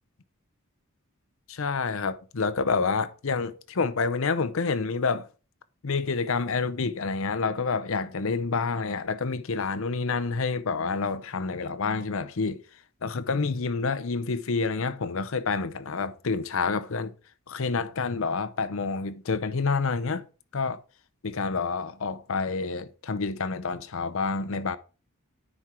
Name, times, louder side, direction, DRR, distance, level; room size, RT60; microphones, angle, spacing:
voice 1, 1.5-5.3 5.8-12.6 13.0-17.1 17.5-20.2 20.5-20.8 21.2-24.8, left 4 dB, 70° left, 0.7 m, -28 dB
9.8 x 4.5 x 4.7 m
head